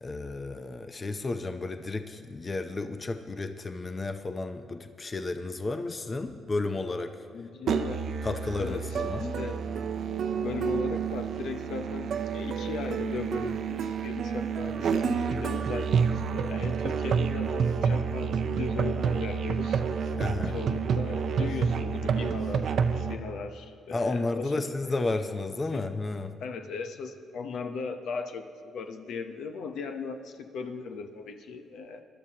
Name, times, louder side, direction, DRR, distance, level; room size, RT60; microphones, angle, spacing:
voice 1, 0.0-7.2 8.2-9.4 20.2-20.6 23.9-26.3, left 3 dB, 30° left, 8 dB, 0.7 m, -32 dB
voice 2, 7.3-8.1 8.4-9.6 10.4-19.8 20.4-24.5 25.7-25.9 26.4-32.0, left 5 dB, 75° left, 7 dB, 0.8 m, -38 dB
Musical instrument, 7.7-23.2, right 6 dB, 65° right, 0.7 m, -29 dB
22.0 x 12.0 x 2.9 m, 2.2 s
cardioid pair, 90°, 0 cm